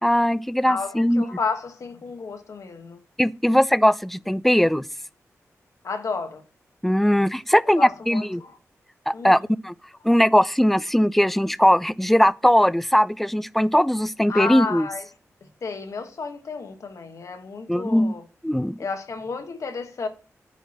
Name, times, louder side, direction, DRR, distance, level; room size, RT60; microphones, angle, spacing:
voice 1, 0.0-1.2 3.2-4.8 6.8-8.4 9.1-9.7 10.0-14.9 17.7-18.1 18.4-18.8, equal, 5° left, 0.4 m, -20 dB
voice 2, 0.6-3.0 5.8-6.4 7.8-8.6 9.1-9.5 14.3-15.0 15.4-18.2 18.8-20.1, left 4 dB, 70° left, 1.4 m, -32 dB
8.9 x 4.7 x 4.3 m
cardioid pair, 65°, 6 cm